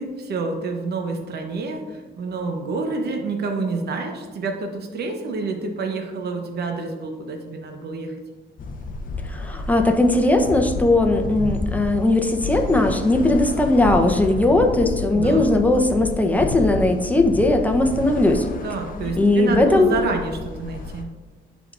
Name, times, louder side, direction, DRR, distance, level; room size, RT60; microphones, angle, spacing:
voice 1, 0.0-8.2 15.1-15.6 18.6-21.1, right 3 dB, 55° right, 3 dB, 0.8 m, -28 dB
sound 1, 8.6-21.0, left 3 dB, 45° left, 0.6 m, -31 dB
voice 2, 9.3-18.5 19.2-20.0, left 2 dB, 10° left, 4 dB, 0.7 m, -18 dB
10.5 x 3.6 x 2.5 m, 1.3 s
cardioid pair, 90°, 20 cm